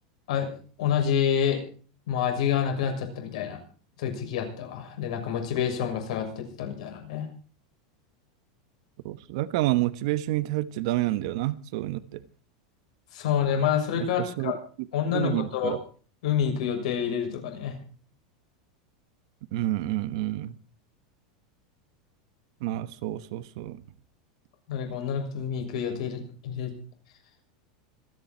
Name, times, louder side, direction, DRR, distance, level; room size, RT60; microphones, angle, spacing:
voice 1, 0.8-1.6 2.1-3.6 4.0-7.3 13.1-14.5 14.9-15.8 16.2-17.8 24.7-26.7, left 8 dB, 70° left, 6.7 m, -28 dB
voice 2, 9.0-12.2 14.0-14.5 15.1-15.8 19.5-20.5 22.6-23.8, right 15 dB, 55° right, 1.1 m, -29 dB
26.0 x 10.0 x 4.5 m
supercardioid pair, 165°, 4 cm